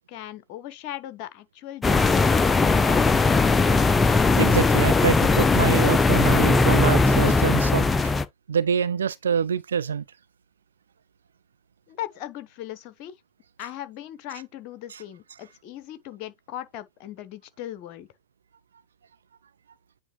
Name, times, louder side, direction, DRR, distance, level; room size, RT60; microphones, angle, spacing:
voice 1, 0.0-3.1 11.9-13.2 13.6-18.1, left 12 dB, 40° left, 0.9 m, -38 dB
sound 1, 1.8-8.3, left 3 dB, 15° left, 0.5 m, -19 dB
voice 2, 4.3-8.1 8.5-10.0 14.9-15.0, right 7 dB, 70° right, 0.4 m, -26 dB
9.4 x 3.6 x 3.0 m
figure-of-eight pair, 90°, 0 cm